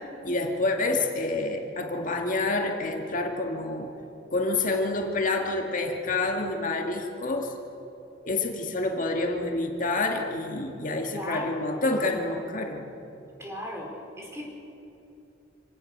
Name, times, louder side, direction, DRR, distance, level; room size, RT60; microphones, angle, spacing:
voice 1, 0.2-3.9 4.3-7.6 8.2-12.9, left 2 dB, 45° left, 2 dB, 2.1 m, -28 dB
voice 2, 11.1-11.7 13.4-14.4, left 1 dB, 15° right, 0 dB, 4.8 m, -36 dB
27.0 x 17.5 x 6.7 m, 2.8 s
head